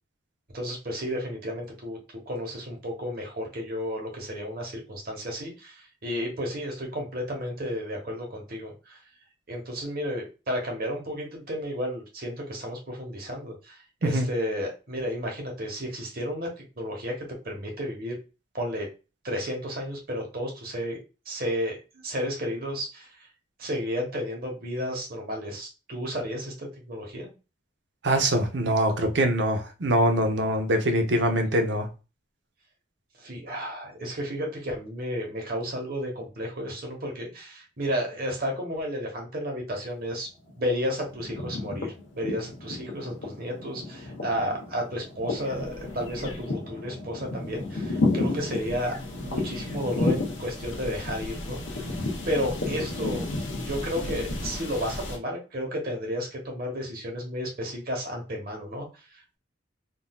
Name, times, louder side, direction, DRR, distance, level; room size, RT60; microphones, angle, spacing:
voice 1, 0.5-2.0 2.3-9.0 9.5-18.2 18.5-18.9 19.2-21.0 21.3-23.3 23.6-27.3 31.3-31.4 33.2-40.3 40.6-48.9 49.2-52.0 52.3-53.3 53.6-59.4, equal, 50° right, 1.1 m, -32 dB
voice 2, 28.0-31.9, right 1 dB, 65° right, 0.7 m, -23 dB
sound 1, 40.0-40.6 40.9-55.2, left 2 dB, 80° left, 1.0 m, -32 dB
3.7 x 2.6 x 2.3 m
head